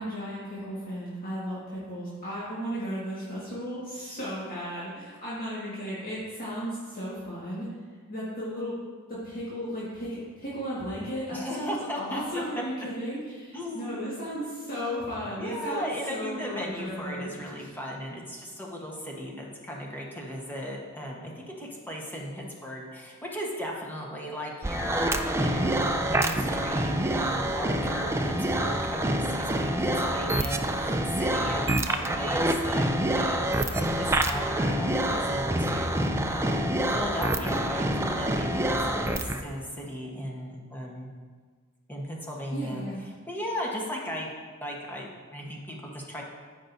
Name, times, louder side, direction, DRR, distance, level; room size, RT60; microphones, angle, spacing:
voice 1, 0.0-7.7 8.1-8.8 9.1-17.3 42.5-43.0, equal, 45° left, -9 dB, 1.8 m, -35 dB
voice 2, 11.3-12.6 13.5-14.0 15.4-32.9 33.1-41.1 41.9-44.3 44.6-46.2, equal, 10° left, -2 dB, 1.1 m, -36 dB
sound 1, 24.6-39.4, right 1 dB, 10° right, 0.4 m, -27 dB
13.5 x 5.3 x 2.7 m, 1.6 s
head